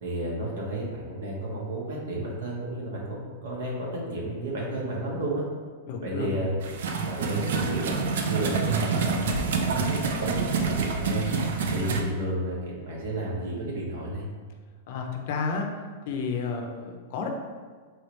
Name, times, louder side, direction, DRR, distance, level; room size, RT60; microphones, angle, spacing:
voice 1, 0.0-5.4 6.0-6.5 7.1-7.9 8.3-9.6 9.9-11.3 11.7-14.2, right 1 dB, 90° right, -3 dB, 1.3 m, -32 dB
voice 2, 5.9-6.5 14.9-15.7 16.0-17.3, left 5 dB, 45° left, 3 dB, 0.5 m, -31 dB
sound 1, 6.6-12.0, right 4 dB, 70° right, 0.5 m, -27 dB
4.5 x 3.2 x 3.1 m, 1.5 s
supercardioid pair, 175°, 0 cm